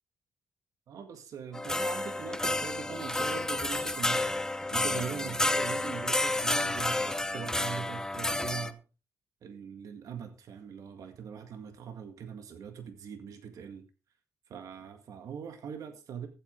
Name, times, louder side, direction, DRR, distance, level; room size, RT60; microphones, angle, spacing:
voice 1, 0.9-8.8 9.4-13.8 14.5-16.3, right 7 dB, 75° right, 1.9 m, -41 dB
sound 1, 1.5-8.7, left 2 dB, 10° left, 0.8 m, -30 dB
14.0 x 8.3 x 3.8 m
cardioid pair, 75°, 6 cm